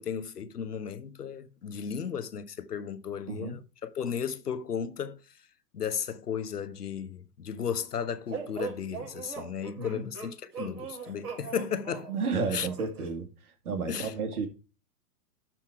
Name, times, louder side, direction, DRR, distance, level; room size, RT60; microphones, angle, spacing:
voice 1, 0.0-5.2 5.7-12.1 12.5-12.7 13.9-14.1, left 7 dB, 85° left, 1.1 m, -34 dB
sound 1, 8.3-13.1, right 6 dB, 30° right, 4.6 m, -40 dB
voice 2, 9.8-10.1 12.1-13.3 13.6-14.5, right 4 dB, 70° right, 2.5 m, -32 dB
12.0 x 4.4 x 4.6 m
hypercardioid pair, 105°, 45 cm